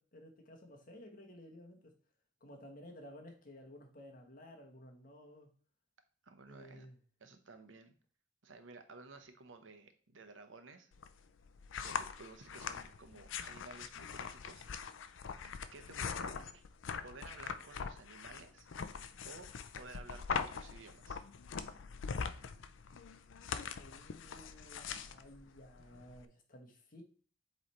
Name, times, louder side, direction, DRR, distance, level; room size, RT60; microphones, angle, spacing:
voice 1, 0.0-2.0 2.4-5.5 6.5-7.0 23.8-27.0, left 1 dB, 45° left, 1.2 m, -55 dB
voice 2, 6.2-6.9 7.2-7.9 8.4-10.9 11.8-14.6 15.7-16.6 17.0-18.7 19.2-19.5 19.7-21.2, right 3 dB, 85° right, 0.9 m, -54 dB
sound 1, 10.9-26.2, left 6 dB, 85° left, 0.5 m, -42 dB
7.8 x 3.3 x 4.2 m
head